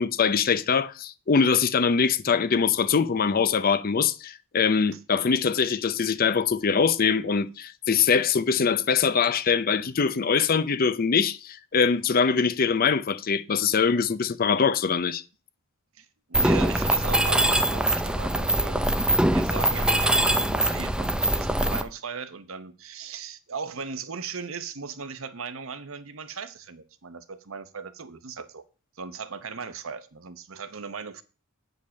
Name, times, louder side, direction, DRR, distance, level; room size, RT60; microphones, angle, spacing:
voice 1, 0.0-15.2, left 6 dB, 45° left, 0.5 m, -23 dB
voice 2, 16.0-18.9 19.3-28.6 29.0-31.2, right 5 dB, 75° right, 0.9 m, -38 dB
Mechanisms, 16.3-21.8, right 1 dB, 5° right, 0.5 m, -23 dB
8.5 x 5.4 x 6.3 m
head